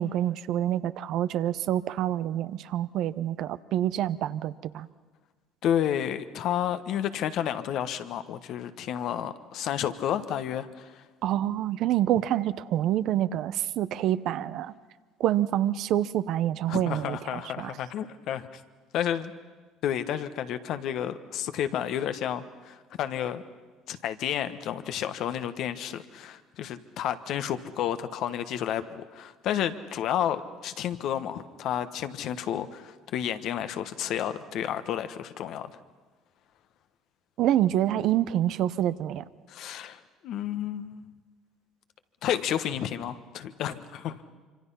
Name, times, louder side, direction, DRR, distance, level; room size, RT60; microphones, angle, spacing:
voice 1, 0.0-4.9 11.2-14.7 15.2-17.8 37.4-39.2, right 12 dB, 65° right, 14 dB, 0.7 m, -27 dB
voice 2, 5.6-11.0 16.7-18.6 18.9-19.3 19.8-23.4 23.9-35.7 39.5-41.1 42.2-44.2, left 10 dB, 65° left, 10 dB, 1.2 m, -31 dB
25.5 x 25.0 x 5.7 m, 1.4 s
hypercardioid pair, 70°, 0 cm